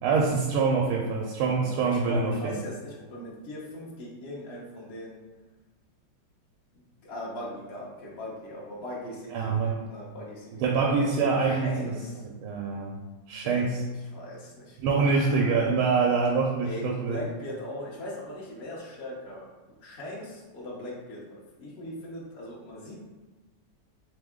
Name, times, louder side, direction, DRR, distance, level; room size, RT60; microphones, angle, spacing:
voice 1, 0.0-2.5 9.3-9.8 10.6-13.0 13.3-13.8 14.8-17.2, right 4 dB, 90° right, -1 dB, 1.5 m, -25 dB
voice 2, 1.6-5.2 6.7-12.2 13.3-13.7 14.0-15.6 15.8-16.1 16.6-19.5 19.8-23.0, equal, 65° left, -4 dB, 0.6 m, -40 dB
3.6 x 3.4 x 3.6 m, 1.2 s
omnidirectional pair, 2.3 m